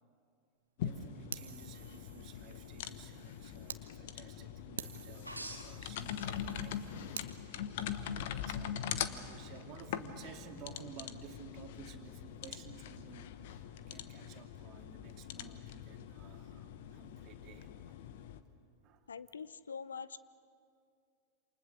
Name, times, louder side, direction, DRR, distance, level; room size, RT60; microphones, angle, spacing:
sound 1, 0.8-18.4, left 9 dB, 55° left, 1.2 m, -43 dB
voice 1, 0.8-18.0 18.8-19.1, right 8 dB, 35° right, 4 dB, 2.3 m, -55 dB
Fire, 1.3-3.8 4.3-4.4 4.8-7.3, right 8 dB, 65° right, 1.1 m, -49 dB
sound 2, 5.2-6.9 7.3-7.9 9.5-9.6, equal, 90° right, 2.5 m, -47 dB
voice 2, 19.1-20.2, left 6 dB, 70° left, 17 dB, 0.6 m, -44 dB
28.0 x 28.0 x 6.9 m, 2.4 s
figure-of-eight pair, 90°, 0 cm